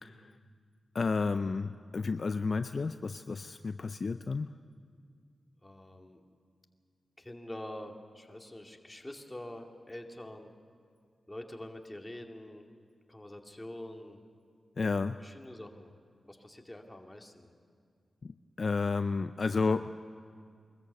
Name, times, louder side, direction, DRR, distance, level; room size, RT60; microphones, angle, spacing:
voice 1, 0.0-0.3 0.9-4.5 14.8-15.2 18.2-19.9, left 4 dB, 55° left, 10 dB, 0.5 m, -31 dB
voice 2, 5.6-6.2 7.2-10.5 11.3-12.7 13.1-14.2 15.2-15.9 16.3-17.5, left 1 dB, 15° left, 3 dB, 2.3 m, -45 dB
22.5 x 14.0 x 8.2 m, 2.2 s
cardioid pair, 45°, 0 cm